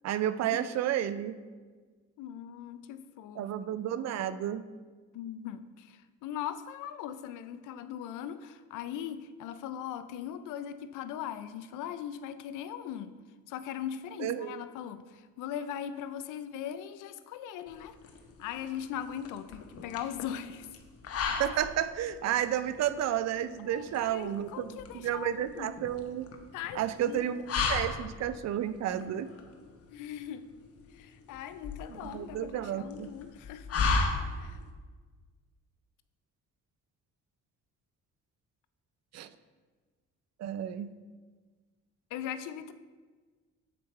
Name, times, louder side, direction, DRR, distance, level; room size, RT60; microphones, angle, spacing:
voice 1, 0.0-1.3 3.4-4.7 14.2-14.7 21.4-26.3 26.7-29.3 31.9-33.1 39.1-39.3 40.4-40.9, right 11 dB, 60° right, 13 dB, 0.4 m, -32 dB
voice 2, 2.2-3.5 5.1-13.1 13.5-17.9 18.4-20.7 23.7-25.7 26.5-27.5 29.9-30.4 30.9-33.7 34.4-34.6 42.1-42.7, left 9 dB, 90° left, 11 dB, 0.5 m, -40 dB
sound 1, 17.7-34.7, left 4 dB, 50° left, 0.8 m, -36 dB
6.7 x 4.2 x 4.2 m, 1.4 s
cardioid pair, 90°, 30 cm